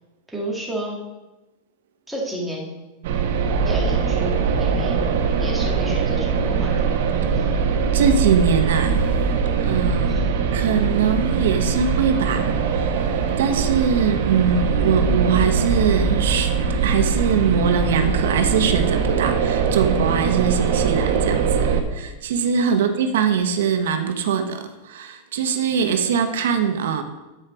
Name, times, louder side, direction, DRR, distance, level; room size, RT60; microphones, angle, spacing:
voice 1, 0.3-1.0 2.1-2.7 3.6-4.3 4.5-5.1 5.4-6.7 7.4-7.5 10.1-10.4 22.7-23.2, right 1 dB, ahead, -4 dB, 2.1 m, -31 dB
sound 1, 3.0-21.8, right 5 dB, 65° right, 1.1 m, -21 dB
voice 2, 7.9-9.1 9.4-10.2 10.5-13.1 13.4-16.5 16.8-27.0, right 7 dB, 85° right, 7 dB, 1.0 m, -22 dB
10.5 x 4.9 x 6.2 m, 1.1 s
supercardioid pair, 165°, 0 cm